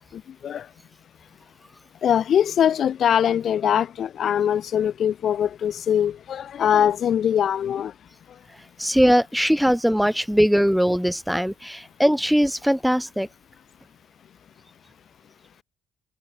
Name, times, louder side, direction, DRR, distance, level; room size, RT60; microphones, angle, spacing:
voice 1, 0.1-0.7 2.0-7.9, left 9 dB, 45° left, 1.0 m, -22 dB
voice 2, 8.8-13.3, equal, ahead, 0.3 m, -20 dB
cardioid pair, 175°, 0 cm